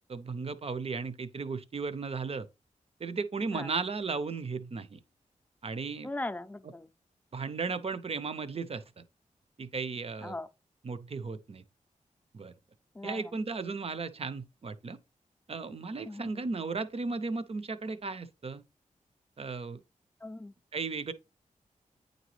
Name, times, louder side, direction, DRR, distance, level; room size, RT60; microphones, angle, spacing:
voice 1, 0.1-2.5 3.0-5.0 5.6-6.1 7.3-9.0 9.6-10.4 10.8-11.6 12.3-12.5 13.0-15.0 15.5-18.6 19.4-19.8 20.7-21.1, right 4 dB, 45° right, 0.6 m, -35 dB
voice 2, 6.0-6.9 10.2-10.5 13.0-13.2 16.1-16.4 20.2-20.5, left 2 dB, 10° left, 0.5 m, -39 dB
9.0 x 4.0 x 3.1 m
wide cardioid pair, 85°, 14 cm